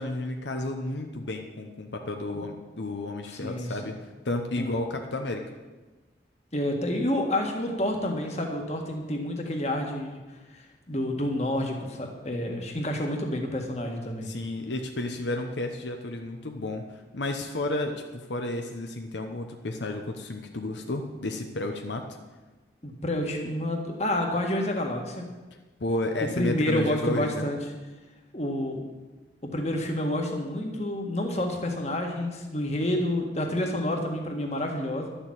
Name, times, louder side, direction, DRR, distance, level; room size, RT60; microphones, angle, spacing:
voice 1, 0.0-4.0 4.2-5.4 14.2-22.0 25.8-27.4, left 2 dB, 80° left, 4 dB, 1.0 m, -32 dB
voice 2, 3.3-3.8 4.6-4.7 6.5-10.2 10.5-14.3 22.8-25.2 26.4-27.6 28.3-28.8 29.5-35.1, left 1 dB, 35° left, 2 dB, 1.8 m, -29 dB
12.0 x 7.1 x 8.8 m, 1.2 s
head